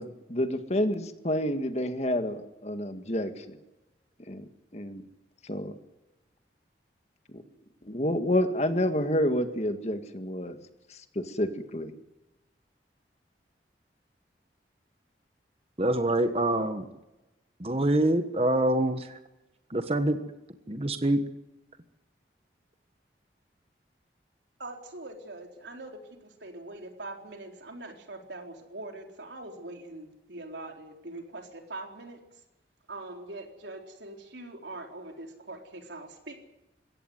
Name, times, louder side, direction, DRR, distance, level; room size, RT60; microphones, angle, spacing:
voice 1, 0.0-3.6 4.3-4.4 4.7-5.0 5.4-5.8 7.3-7.4 7.9-10.6 10.9-11.9, left 1 dB, 40° left, 8 dB, 1.8 m, -29 dB
voice 2, 15.8-16.9 17.6-19.2 19.7-20.2 20.7-21.2, right 1 dB, 35° right, 8 dB, 1.3 m, -25 dB
voice 3, 24.6-32.4 32.9-36.4, right 2 dB, 90° right, 3 dB, 4.1 m, -43 dB
22.5 x 17.0 x 9.4 m, 0.98 s
head